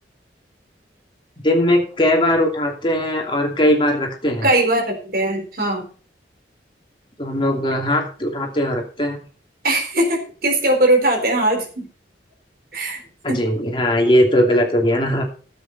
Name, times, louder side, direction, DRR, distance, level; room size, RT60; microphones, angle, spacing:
voice 1, 1.4-4.5 7.2-9.2 13.2-15.2, left 1 dB, 25° left, 1 dB, 2.7 m, -19 dB
voice 2, 4.4-5.8 9.6-11.8 12.7-13.0 13.3-13.4, right 1 dB, 55° right, 2 dB, 4.1 m, -19 dB
15.0 x 8.1 x 4.1 m, 0.39 s
head